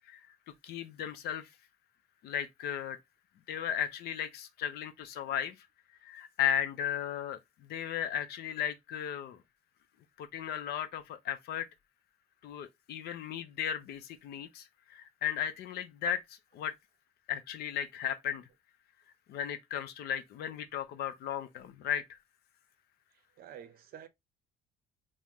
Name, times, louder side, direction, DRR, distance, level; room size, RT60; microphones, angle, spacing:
voice 1, 0.6-1.5 2.2-3.0 3.5-5.5 6.0-9.4 10.2-11.7 12.4-16.7 17.3-18.5 19.3-22.2, left 9 dB, 70° left, 0.6 m, -35 dB
voice 2, 23.1-24.1, right 9 dB, 65° right, 0.6 m, -50 dB
3.6 x 2.1 x 2.9 m
cardioid pair, 110°, 17 cm